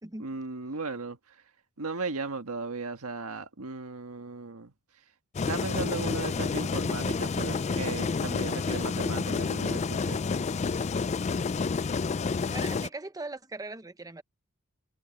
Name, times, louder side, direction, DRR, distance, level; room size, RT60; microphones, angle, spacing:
voice 1, 0.2-1.4 1.8-4.7 5.5-10.2, right 3 dB, 70° right, 1.6 m, -36 dB
sound 1, 5.3-12.9, left 4 dB, 30° left, 0.4 m, -29 dB
voice 2, 12.4-14.2, right 2 dB, 15° right, 1.0 m, -40 dB
head